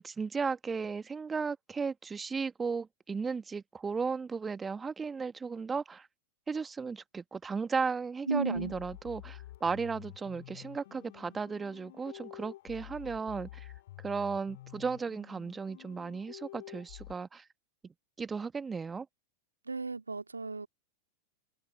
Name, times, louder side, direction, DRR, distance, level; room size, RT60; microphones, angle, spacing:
voice 1, 0.0-6.1 6.5-13.7 14.0-17.4 18.2-19.1, right 5 dB, 15° right, 1.7 m, -35 dB
voice 2, 8.3-8.8 19.6-20.7, right 3 dB, 80° right, 2.5 m, -34 dB
sound 1, 8.5-17.1, left 15 dB, 55° left, 3.4 m, -49 dB
figure-of-eight pair, 90°, 0 cm